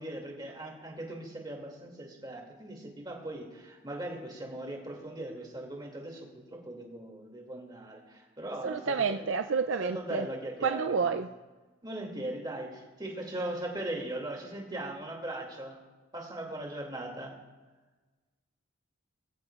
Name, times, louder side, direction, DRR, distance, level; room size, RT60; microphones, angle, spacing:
voice 1, 0.0-9.2 9.8-11.1 11.8-15.8 16.1-17.4, right 1 dB, 20° right, 0 dB, 2.4 m, -39 dB
voice 2, 8.6-10.3 10.6-11.3, right 5 dB, 65° right, 8 dB, 0.4 m, -29 dB
21.5 x 14.5 x 2.4 m, 1.2 s
head